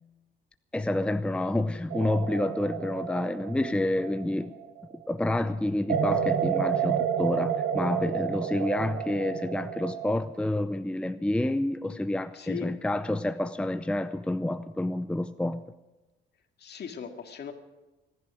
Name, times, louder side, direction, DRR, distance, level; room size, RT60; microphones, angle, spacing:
voice 1, 0.7-4.5 5.1-15.6, left 1 dB, 5° left, 11 dB, 0.6 m, -29 dB
sonar submarine radar hydrogen skyline com, 1.9-4.9 5.9-10.2, right 8 dB, 70° right, 1.0 m, -30 dB
voice 2, 12.3-12.7 16.6-17.5, left 7 dB, 55° left, 5 dB, 2.2 m, -38 dB
24.5 x 11.0 x 5.0 m, 1.1 s
cardioid pair, 90°, 20 cm